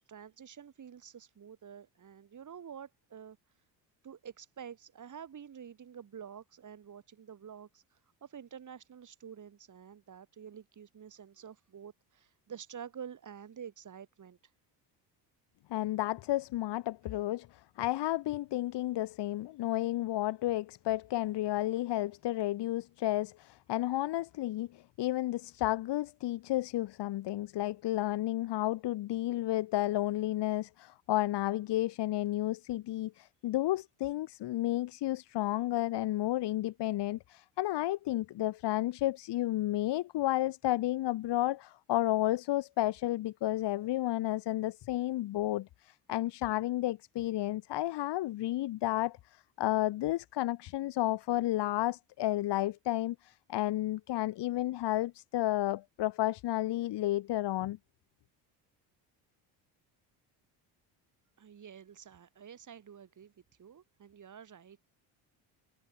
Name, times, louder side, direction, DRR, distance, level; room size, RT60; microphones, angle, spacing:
voice 1, 0.1-3.4 4.0-14.4 61.4-63.3 63.6-64.8, right 8 dB, 45° right, 7.6 m, -49 dB
voice 2, 15.7-57.8, left 15 dB, 65° left, 3.2 m, -32 dB
supercardioid pair, 95°, 44 cm